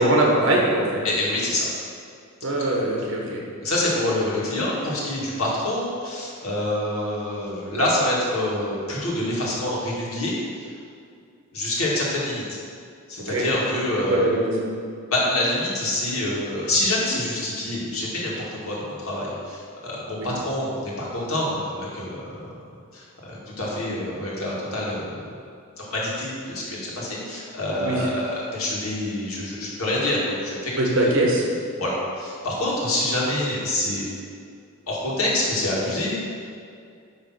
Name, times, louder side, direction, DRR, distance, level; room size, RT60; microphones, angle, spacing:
voice 1, 0.0-1.0 2.4-3.4 13.3-13.4 14.1-14.5 20.2-20.3 27.8-28.1 30.8-31.4, right 1 dB, 60° right, -2 dB, 1.6 m, -21 dB
voice 2, 1.0-1.7 3.6-10.7 11.5-12.4 13.1-14.2 15.1-22.5 22.9-25.1 25.8-30.7 31.8-34.1 34.9-36.2, left 1 dB, 80° left, -5 dB, 2.0 m, -26 dB
9.9 x 3.3 x 5.9 m, 2.3 s
head